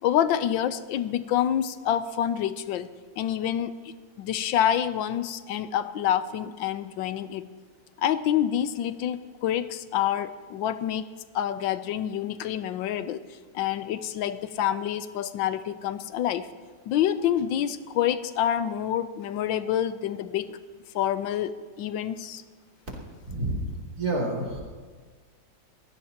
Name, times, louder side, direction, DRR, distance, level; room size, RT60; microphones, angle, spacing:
voice 1, 0.0-2.9 3.2-3.7 4.2-7.4 8.0-11.1 11.3-13.2 13.5-16.5 16.9-20.6 20.9-22.4, left 10 dB, 85° left, 13 dB, 1.4 m, -27 dB
voice 2, 23.2-23.7 24.0-24.6, right 2 dB, 45° right, -3 dB, 3.5 m, -28 dB
22.5 x 16.0 x 2.9 m, 1.5 s
omnidirectional pair, 2.0 m